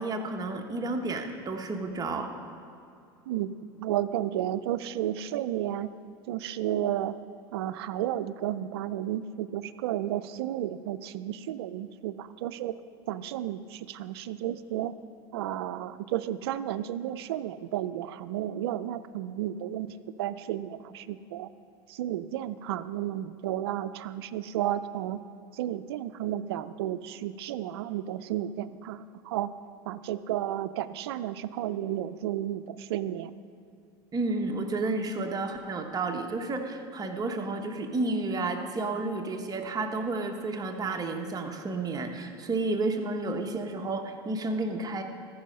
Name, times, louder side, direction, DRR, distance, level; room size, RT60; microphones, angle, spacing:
voice 1, 0.0-2.3 34.1-45.0, right 3 dB, 30° right, 4 dB, 1.2 m, -31 dB
voice 2, 3.3-5.9 6.3-7.2 7.5-12.8 13.1-14.9 15.3-21.5 21.9-25.2 25.5-29.5 29.9-33.3, right 12 dB, 85° right, 14 dB, 0.4 m, -32 dB
14.5 x 5.5 x 5.3 m, 2.6 s
hypercardioid pair, 95°, 13 cm